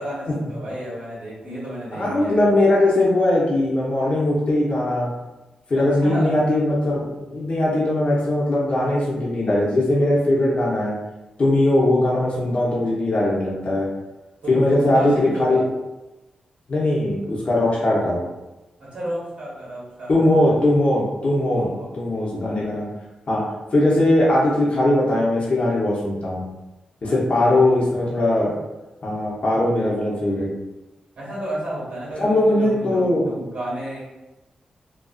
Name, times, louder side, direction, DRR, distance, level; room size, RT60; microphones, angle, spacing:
voice 1, 0.0-2.5 5.7-6.3 14.4-15.6 18.8-20.6 21.6-21.9 27.0-27.6 31.2-34.0, right 1 dB, 85° right, -6 dB, 1.1 m, -32 dB
voice 2, 1.9-5.1 5.7-11.0 11.4-13.9 14.5-15.6 16.7-18.2 20.1-21.7 22.0-22.9 23.3-23.4 23.7-26.4 27.0-28.5 29.0-30.5 32.2-33.3, left 1 dB, 55° left, -5 dB, 0.7 m, -20 dB
2.4 x 2.3 x 2.3 m, 1.0 s
cardioid pair, 55°, 2 cm